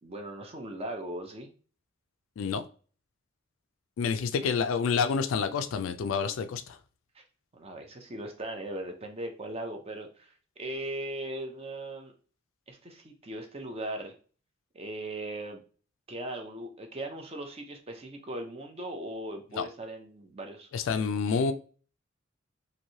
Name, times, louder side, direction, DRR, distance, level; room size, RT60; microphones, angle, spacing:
voice 1, 0.0-1.5 4.4-4.5 7.1-7.2 7.5-12.1 12.7-14.1 14.7-15.6 16.1-21.5, right 1 dB, 30° right, 0.6 m, -39 dB
voice 2, 4.0-6.8 19.5-19.7 20.7-21.5, left 5 dB, 70° left, 0.3 m, -28 dB
3.1 x 2.6 x 2.7 m
head